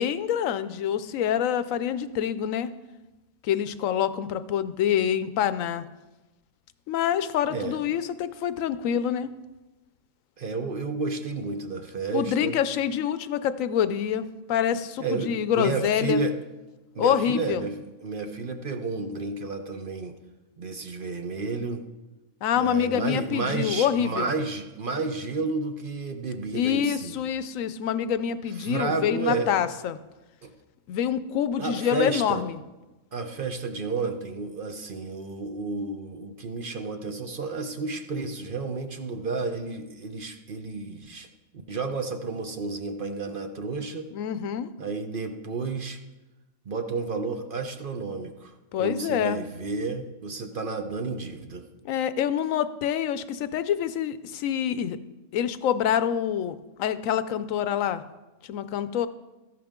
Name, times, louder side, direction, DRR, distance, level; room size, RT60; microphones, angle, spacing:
voice 1, 0.0-2.7 3.4-5.8 6.9-9.3 12.1-16.2 17.0-17.6 22.4-24.3 26.5-30.0 30.9-32.6 44.1-44.7 48.7-49.4 51.8-55.0 55.3-58.0 58.5-59.1, left 9 dB, 85° left, 13 dB, 1.0 m, -26 dB
voice 2, 7.5-7.8 10.4-12.6 15.0-16.3 16.9-20.2 20.6-21.8 22.6-27.2 28.6-29.6 30.4-30.5 31.6-32.4 33.1-41.3 41.7-44.1 44.8-46.0 46.7-48.5 48.8-51.6, right 3 dB, 45° right, 6 dB, 0.9 m, -31 dB
13.5 x 10.5 x 3.7 m, 1.1 s
omnidirectional pair, 1.4 m